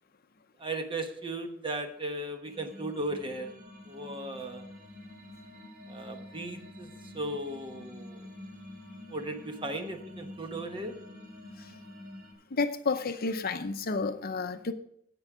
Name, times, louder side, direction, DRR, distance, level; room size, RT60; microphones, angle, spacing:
voice 1, 0.6-3.5 3.9-4.6 5.9-8.3 9.1-10.9, right 1 dB, 25° right, 5 dB, 1.1 m, -36 dB
sound 1, 2.4-12.3, left 1 dB, 50° right, 3.6 m, -47 dB
voice 2, 12.5-14.7, left 4 dB, 50° left, 9 dB, 0.7 m, -31 dB
15.5 x 5.3 x 4.9 m, 0.73 s
head